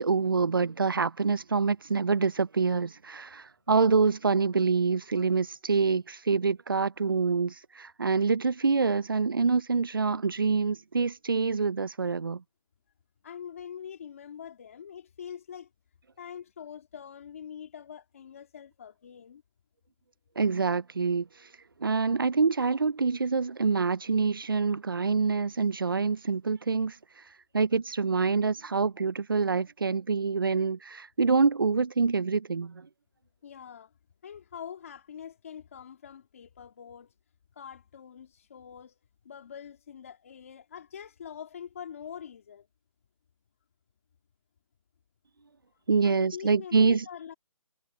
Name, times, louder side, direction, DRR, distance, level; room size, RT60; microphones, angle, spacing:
voice 1, 0.0-12.4 20.4-21.3 21.8-27.0 27.5-32.9 45.9-47.1, right 4 dB, 40° right, 0.4 m, -26 dB
voice 2, 13.2-15.7 16.2-19.4 33.4-33.9 34.2-37.1 37.6-39.0 39.2-42.7 46.0-47.3, left 8 dB, 25° left, 1.9 m, -44 dB
hypercardioid pair, 175°, 17 cm